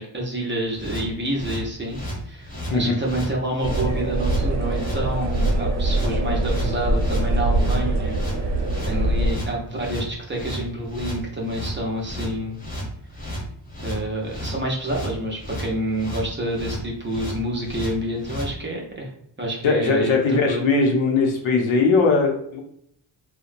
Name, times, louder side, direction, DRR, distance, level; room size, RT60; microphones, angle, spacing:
voice 1, 0.0-2.0 2.3-8.6 8.8-12.6 13.8-19.1 19.4-20.6, right 1 dB, 25° right, -2 dB, 0.6 m, -28 dB
sound 1, 0.7-18.5, equal, 20° left, 0.7 m, -33 dB
sound 2, 3.6-9.3, right 1 dB, 60° right, 0.7 m, -23 dB
voice 2, 19.6-22.6, left 4 dB, 85° left, 1 dB, 0.7 m, -20 dB
2.8 x 2.1 x 2.4 m, 0.70 s
wide cardioid pair, 130°, 46 cm